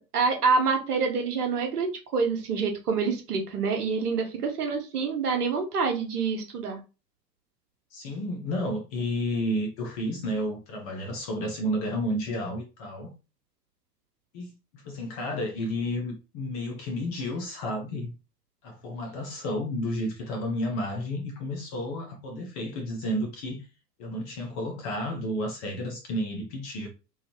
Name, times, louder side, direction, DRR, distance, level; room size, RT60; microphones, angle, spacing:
voice 1, 0.1-6.8, right 5 dB, 65° right, 1.0 m, -27 dB
voice 2, 7.9-13.1 14.3-18.1 18.6-23.7 24.0-26.9, equal, 25° left, 0.4 m, -31 dB
3.0 x 2.0 x 2.9 m
figure-of-eight pair, 95°, 50 cm